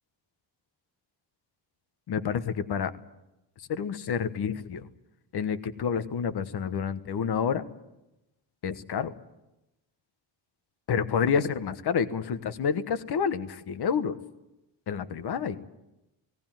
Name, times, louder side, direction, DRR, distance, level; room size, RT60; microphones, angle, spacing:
voice 1, 2.1-2.9 3.7-4.9 5.3-7.6 8.6-9.1 10.9-14.2 14.9-15.6, left 7 dB, 55° left, 11 dB, 1.3 m, -29 dB
18.5 x 18.0 x 9.1 m, 0.94 s
wide cardioid pair, 150°, 46 cm